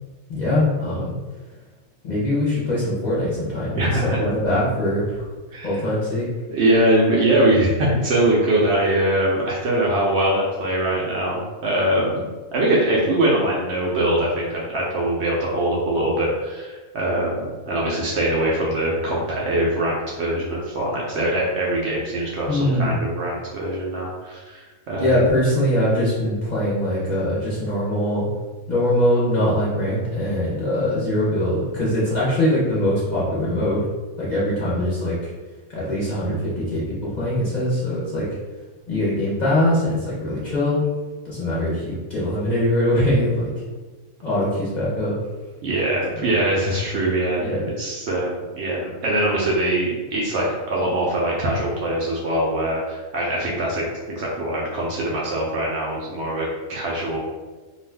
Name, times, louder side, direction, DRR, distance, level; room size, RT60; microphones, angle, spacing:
voice 1, 0.3-1.1 2.0-5.3 5.6-6.3 22.5-23.0 24.9-28.3 28.7-33.9 34.2-35.3 35.7-38.3 38.9-40.8 41.2-43.5 44.2-45.1 46.2-46.4 47.4-47.6, left 1 dB, 40° left, -8 dB, 0.7 m, -22 dB
voice 2, 3.7-4.2 5.5-5.8 6.5-25.2 45.6-57.2, right 1 dB, 65° right, -4 dB, 0.7 m, -22 dB
2.5 x 2.3 x 3.3 m, 1.3 s
omnidirectional pair, 1.4 m